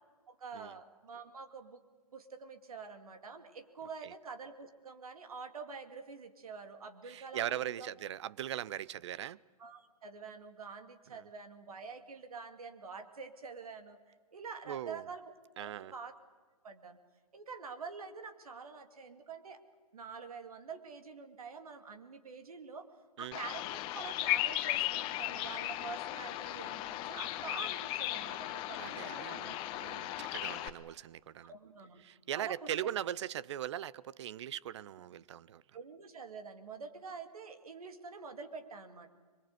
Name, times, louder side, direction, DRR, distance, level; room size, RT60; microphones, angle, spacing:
voice 1, 0.3-1.8 2.1-7.9 9.6-16.1 16.6-17.0 17.3-19.6 19.9-22.9 23.2-29.6 31.4-32.0 32.3-32.7 35.7-39.1, right 5 dB, 70° right, 2.4 m, -47 dB
voice 2, 7.1-9.4 11.1-11.2 14.7-15.0 15.6-15.9 23.2-23.4 28.7-31.5 32.0-35.6, right 11 dB, 50° right, 0.6 m, -40 dB
Bird vocalization bird call bird song, 23.3-30.7, left 15 dB, 25° left, 1.0 m, -36 dB
23.0 x 22.5 x 8.0 m
hypercardioid pair, 130°, 19 cm